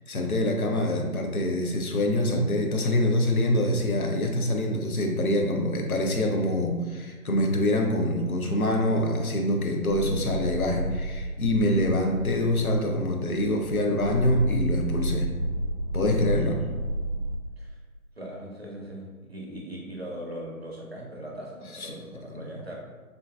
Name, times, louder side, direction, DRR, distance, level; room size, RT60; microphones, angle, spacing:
voice 1, 0.1-15.3 15.9-16.5 21.7-21.9, left 1 dB, 70° left, 2 dB, 0.7 m, -25 dB
sound 1, 9.8-17.3, right 1 dB, 25° left, 1.1 m, -31 dB
voice 2, 16.3-16.8 17.6-17.8 18.2-22.7, equal, 45° right, -3 dB, 0.6 m, -40 dB
3.6 x 2.5 x 2.3 m, 1.3 s
figure-of-eight pair, 160°, 44 cm